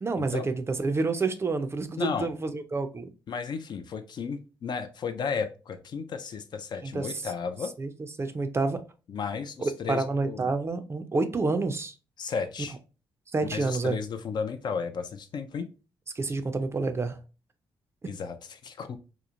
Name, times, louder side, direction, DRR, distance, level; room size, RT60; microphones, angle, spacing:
voice 1, 0.0-3.1 6.8-7.2 7.8-7.9 8.2-8.8 9.6-11.9 13.3-14.0 16.2-17.2, right 3 dB, 30° right, 0.4 m, -28 dB
voice 2, 2.0-2.3 3.3-7.7 9.1-10.5 12.2-12.8 13.5-15.7 18.0-19.0, left 5 dB, 50° left, 0.4 m, -34 dB
2.9 x 2.0 x 2.4 m
cardioid pair, 75°, 9 cm